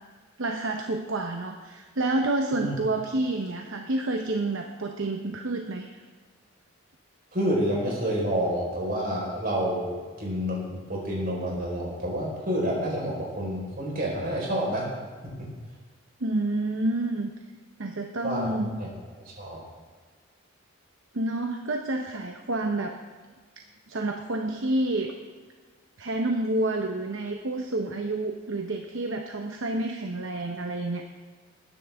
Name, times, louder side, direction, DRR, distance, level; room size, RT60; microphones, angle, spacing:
voice 1, 0.4-6.0 16.2-17.3 17.8-18.7 21.1-23.0 23.9-25.1 26.0-31.0, right 2 dB, 65° right, 3 dB, 0.8 m, -29 dB
voice 2, 7.3-14.9 15.2-15.5 18.2-18.9 19.2-19.6, equal, 40° right, -3 dB, 4.4 m, -29 dB
21.0 x 10.5 x 3.5 m, 1.5 s
head